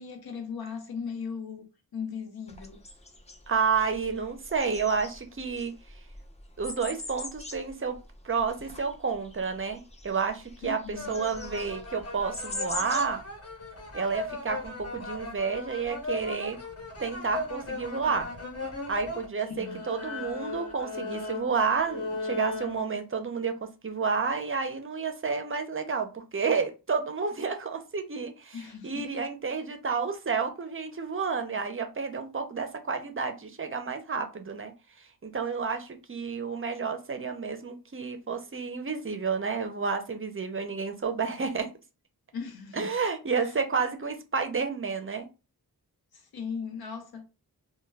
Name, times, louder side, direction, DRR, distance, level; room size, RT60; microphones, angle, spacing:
voice 1, 0.0-2.8 10.6-11.2 19.4-19.8 28.5-29.2 42.3-43.0 43.4-43.5 46.1-47.2, left 6 dB, 80° left, 0.7 m, -38 dB
sound 1, 2.5-13.1, left 2 dB, 20° left, 0.5 m, -42 dB
voice 2, 3.5-5.7 6.6-8.0 8.2-13.2 13.9-16.6 17.0-18.3 18.9-28.6 28.8-34.7 35.0-41.7 42.7-45.3, right 5 dB, 35° right, 0.5 m, -30 dB
sound 2, 10.9-19.2 19.6-22.8, left 2 dB, 40° left, 0.8 m, -37 dB
2.2 x 2.2 x 3.2 m
wide cardioid pair, 80°, 36 cm